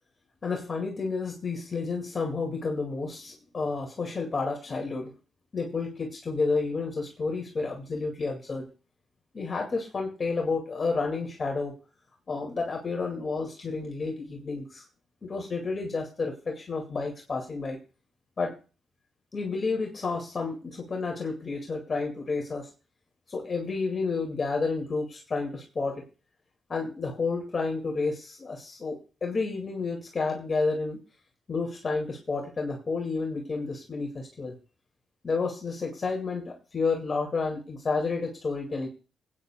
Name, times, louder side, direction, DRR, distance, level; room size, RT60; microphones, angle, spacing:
voice 1, 0.4-5.1 5.5-8.7 9.3-11.7 12.3-14.8 15.2-17.8 18.4-18.5 19.3-22.7 23.3-26.0 26.7-31.0 31.5-34.5 35.2-38.9, left 4 dB, 40° left, 1 dB, 2.2 m, -30 dB
18.0 x 9.2 x 2.3 m, 0.34 s
cardioid pair, 70°, 0 cm